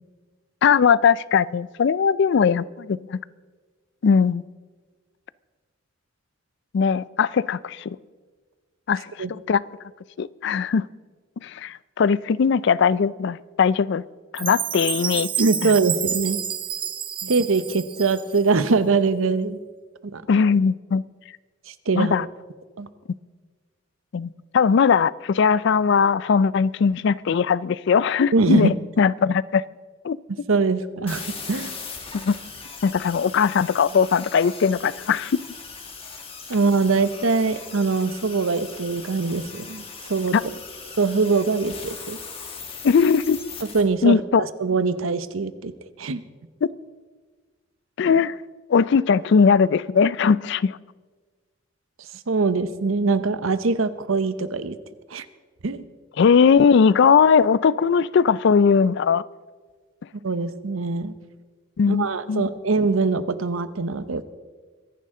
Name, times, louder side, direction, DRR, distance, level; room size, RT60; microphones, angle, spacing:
voice 1, 0.6-3.2 4.0-4.4 6.7-8.0 8.9-9.6 10.2-10.9 11.4-14.0 14.3-15.3 15.6-15.7 17.2-17.3 20.3-21.0 21.9-22.3 24.1-29.6 30.0-30.2 32.1-32.4 32.8-35.4 40.3-40.4 42.8-43.4 44.0-44.5 46.6-46.7 48.0-48.3 48.7-50.8 56.2-59.2 61.8-62.5, left 6 dB, 60° left, 20 dB, 0.4 m, -19 dB
Chime, 14.3-18.5, right 9 dB, 25° right, 0.5 m, -29 dB
voice 2, 15.4-16.4 17.3-19.6 20.1-20.2 21.7-22.1 22.8-22.9 28.3-28.7 30.5-31.7 36.5-40.3 41.0-42.2 43.7-44.2 44.6-45.7 46.0-46.2 52.3-54.8 55.1-55.2 55.6-55.8 60.2-61.1 61.9-64.2, right 4 dB, 85° right, 13 dB, 0.8 m, -22 dB
sound 1, 31.1-43.8, left 5 dB, 30° left, 1.9 m, -39 dB
23.5 x 11.0 x 3.7 m, 1.4 s
head